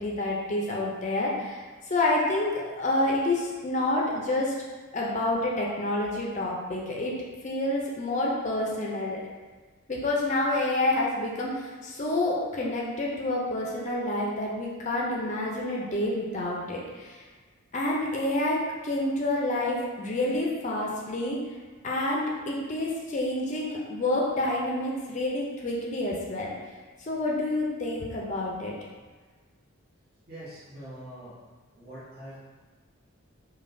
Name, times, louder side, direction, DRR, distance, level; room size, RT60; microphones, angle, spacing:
voice 1, 0.0-4.5 4.9-7.2 7.4-9.2 9.9-17.2 17.7-21.4 21.8-26.5 27.0-28.7, left 1 dB, 35° left, -3 dB, 0.4 m, -28 dB
voice 2, 30.3-31.4 31.7-32.4, right 1 dB, 45° right, -9 dB, 1.1 m, -43 dB
5.1 x 2.2 x 2.6 m, 1.4 s
head